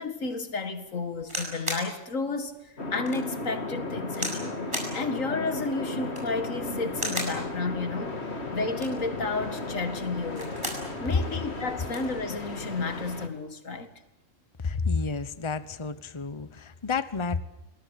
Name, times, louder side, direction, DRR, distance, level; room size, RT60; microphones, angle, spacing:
voice 1, 0.0-4.6 4.9-8.2 8.5-10.5 11.0-13.9, left 3 dB, 85° left, 2.4 m, -32 dB
sound 1, 1.2-1.9 2.5-2.6 3.1-3.2 4.1-4.4 4.7-5.0 6.0-6.4 6.9-7.4 8.6-9.1 10.2-10.9 11.3-11.4 11.6-12.1 13.0-13.2, equal, 20° right, 7.2 m, -34 dB
sound 2, 2.8-13.3, left 2 dB, 55° left, 2.6 m, -35 dB
voice 2, 14.6-17.4, left 4 dB, 25° left, 1.0 m, -30 dB
29.0 x 20.0 x 8.2 m
omnidirectional pair, 1.3 m